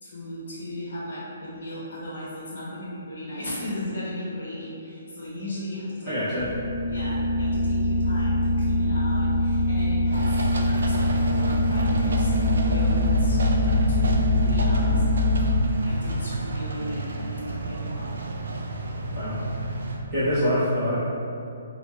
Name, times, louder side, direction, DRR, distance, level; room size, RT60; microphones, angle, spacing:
voice 1, 0.0-6.2 6.9-15.0 15.5-18.2, left 1 dB, 70° left, -7 dB, 0.8 m, -36 dB
voice 2, 6.1-6.5 19.1-19.4 19.7-19.8 20.1-20.9, equal, 25° right, -15 dB, 1.2 m, -25 dB
sound 1, 6.4-15.6, left 1 dB, 5° left, 0.5 m, -23 dB
sound 2, 10.1-20.0, right 2 dB, 80° right, 0.4 m, -31 dB
4.3 x 2.5 x 2.2 m, 2.7 s
hypercardioid pair, 160°, 0 cm